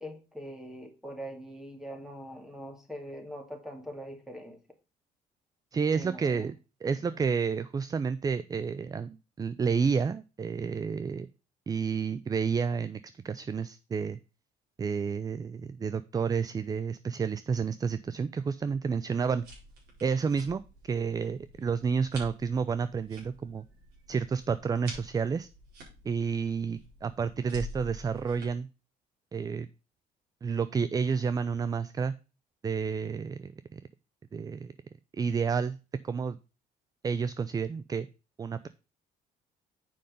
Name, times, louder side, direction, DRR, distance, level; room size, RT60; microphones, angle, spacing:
voice 1, 0.0-4.6 5.9-6.5 6.9-7.2, equal, 5° right, 4 dB, 2.3 m, -42 dB
voice 2, 5.7-6.6 6.8-11.3 11.7-14.2 14.8-19.5 20.0-23.6 24.1-25.5 26.0-28.7 29.3-29.7 30.4-32.1 32.6-33.8 34.3-34.7 35.1-35.8 36.0-36.4 37.0-38.1 38.4-38.7, right 5 dB, 20° right, 15 dB, 0.4 m, -30 dB
sound 1, 19.1-28.5, right 1 dB, 70° right, 4.8 m, -48 dB
7.7 x 5.4 x 5.1 m, 0.31 s
cardioid pair, 110°, 17 cm